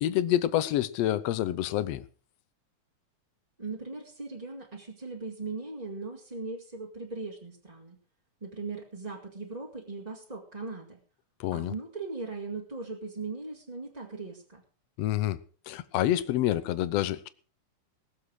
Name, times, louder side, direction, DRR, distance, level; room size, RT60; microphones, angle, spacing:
voice 1, 0.0-2.1 11.4-11.7 15.0-15.4 15.7-17.3, left 13 dB, 70° left, 1.8 m, -27 dB
voice 2, 3.6-8.0 8.4-11.0 11.5-14.6, right 3 dB, 15° right, 1.8 m, -39 dB
19.0 x 7.4 x 6.4 m
omnidirectional pair, 3.4 m